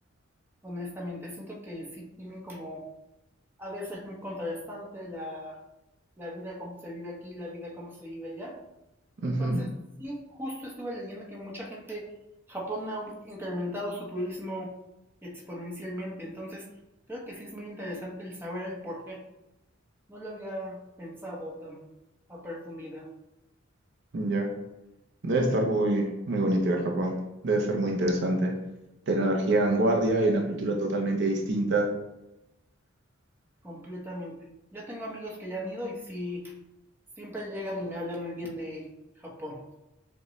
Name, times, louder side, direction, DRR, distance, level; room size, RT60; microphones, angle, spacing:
voice 1, 0.6-2.8 3.6-5.6 6.2-8.5 9.2-9.7 10.0-12.1 12.5-14.7 15.2-16.6 17.1-19.2 20.1-21.8 22.3-23.1 33.6-34.4 34.7-36.5 37.2-38.9 39.2-39.6, equal, 10° right, -3 dB, 0.8 m, -37 dB
voice 2, 9.2-9.6 24.1-24.5 25.2-27.2 27.4-28.5 29.1-31.9, right 2 dB, 55° right, 1 dB, 0.6 m, -25 dB
6.4 x 2.2 x 3.0 m, 0.95 s
head